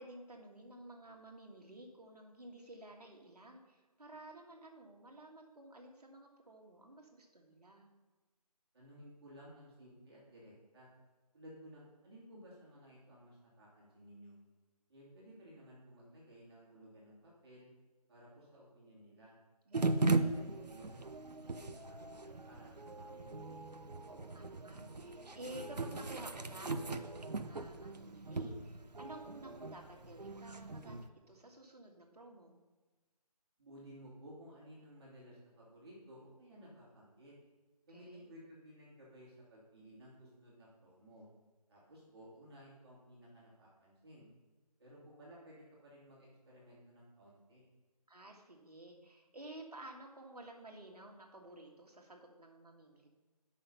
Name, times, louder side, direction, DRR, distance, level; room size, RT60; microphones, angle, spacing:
voice 1, 0.0-7.9 19.7-20.4 24.1-32.6 37.9-38.3 48.1-53.1, right 1 dB, 70° right, 1 dB, 1.7 m, -53 dB
voice 2, 8.7-10.9 11.3-14.4 14.9-17.7 18.1-19.4 19.9-23.6 33.6-37.3 37.9-41.3 41.7-44.3 44.8-47.6, equal, 40° right, -6 dB, 2.7 m, -56 dB
sound 1, 19.7-31.1, right 3 dB, 85° right, 0.6 m, -38 dB
7.6 x 5.8 x 5.6 m, 1.2 s
figure-of-eight pair, 155°, 20 cm